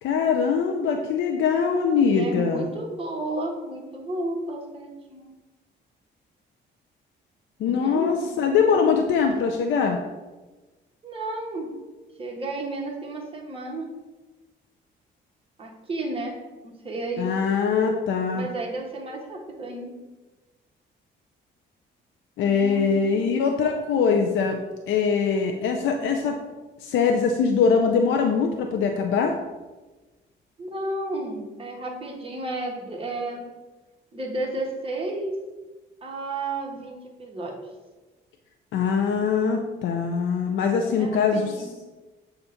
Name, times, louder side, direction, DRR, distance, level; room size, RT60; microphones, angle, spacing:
voice 1, 0.0-2.7 7.6-10.0 17.2-18.5 22.4-24.6 24.9-26.4 26.8-29.3 38.7-41.7, left 5 dB, 80° left, 3 dB, 0.6 m, -22 dB
voice 2, 2.0-5.3 7.6-8.4 11.0-11.7 12.2-13.9 15.6-16.3 16.6-17.3 18.3-19.9 22.5-23.3 30.6-33.4 34.1-35.4 36.0-37.6 40.9-41.8, right 2 dB, 30° right, -2 dB, 1.5 m, -32 dB
7.0 x 2.5 x 5.7 m, 1.2 s
cardioid pair, 90°, 20 cm